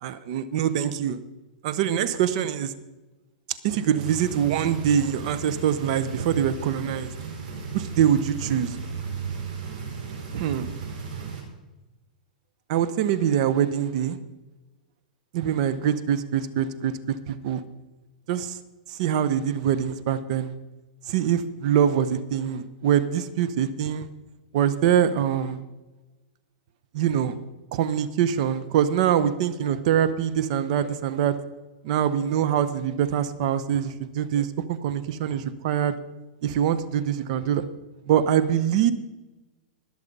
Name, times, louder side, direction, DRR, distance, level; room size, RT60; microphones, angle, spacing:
voice 1, 0.0-1.2 1.6-2.7 3.6-7.1 7.7-8.8 10.3-10.7 12.7-14.2 15.3-17.6 18.3-18.6 18.9-20.5 21.1-24.1 24.5-25.6 26.9-27.4 27.7-31.4 31.8-35.9 36.4-37.6 38.1-38.9, right 9 dB, 50° right, 13 dB, 0.9 m, -24 dB
sound 1, 4.0-11.4, right 5 dB, 70° right, 4.7 m, -35 dB
19.5 x 6.6 x 5.4 m, 1.1 s
hypercardioid pair, 150°, 5 cm